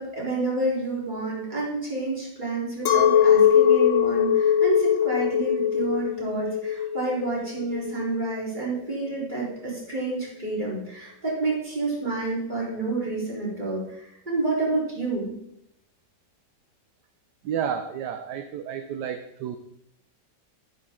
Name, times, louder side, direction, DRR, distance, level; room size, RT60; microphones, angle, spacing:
voice 1, 0.0-13.8 14.3-15.3, right 2 dB, 25° right, -6 dB, 4.0 m, -29 dB
Chink clink, 2.9-8.3, left 9 dB, 55° left, 1.0 m, -21 dB
voice 2, 17.4-19.6, right 8 dB, 70° right, 9 dB, 1.2 m, -31 dB
10.0 x 9.7 x 3.7 m, 0.77 s
omnidirectional pair, 2.1 m